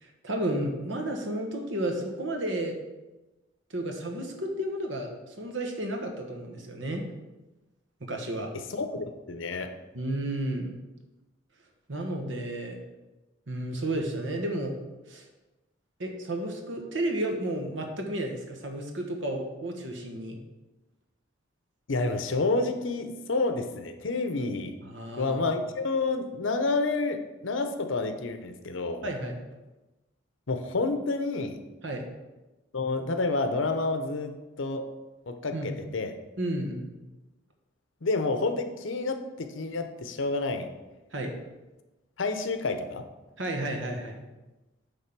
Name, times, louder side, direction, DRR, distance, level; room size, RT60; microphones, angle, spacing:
voice 1, 0.0-2.8 3.7-7.0 8.0-8.5 9.9-10.8 11.9-12.8 13.5-14.7 15.1-15.3 16.0-20.4 24.8-25.4 29.0-29.4 31.8-32.1 35.5-35.8 36.4-36.9 41.1-41.3 43.4-44.2, right 1 dB, 65° right, 3 dB, 1.3 m, -32 dB
voice 2, 8.7-9.7 21.9-24.7 25.2-29.1 30.5-31.6 32.7-34.9 35.3-36.1 38.0-40.7 42.2-43.0, left 3 dB, 75° left, 7 dB, 0.8 m, -29 dB
9.2 x 3.7 x 6.0 m, 1.1 s
head